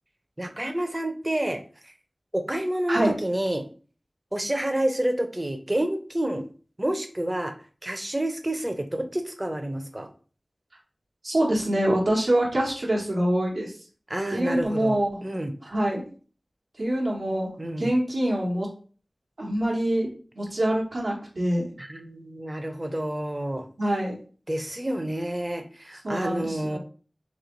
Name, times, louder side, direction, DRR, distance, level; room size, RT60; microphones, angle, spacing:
voice 1, 0.4-1.9 2.3-3.7 4.3-6.4 6.8-7.5 7.8-10.1 14.1-15.5 17.6-17.9 21.8-23.7 24.5-26.8, right 1 dB, 25° right, 7 dB, 0.6 m, -29 dB
voice 2, 11.2-13.7 14.3-15.1 15.6-16.0 16.8-17.5 17.8-18.7 19.4-20.1 20.3-21.7 23.8-24.2 26.0-26.8, right 1 dB, 85° right, -3 dB, 1.2 m, -25 dB
3.1 x 2.8 x 3.8 m, 0.40 s
wide cardioid pair, 60°, 0 cm